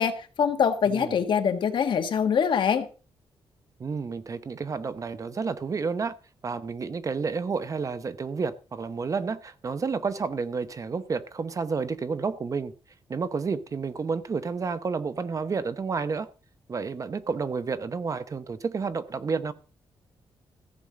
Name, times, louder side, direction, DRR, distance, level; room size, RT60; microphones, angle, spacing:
voice 1, 0.0-2.9, left 7 dB, 60° left, 1.6 m, -24 dB
voice 2, 0.9-1.2 3.8-6.1 6.4-12.7 13.1-16.3 16.7-19.5, right 5 dB, 35° right, 0.8 m, -30 dB
15.0 x 5.4 x 7.4 m
wide cardioid pair, 125°, 9 cm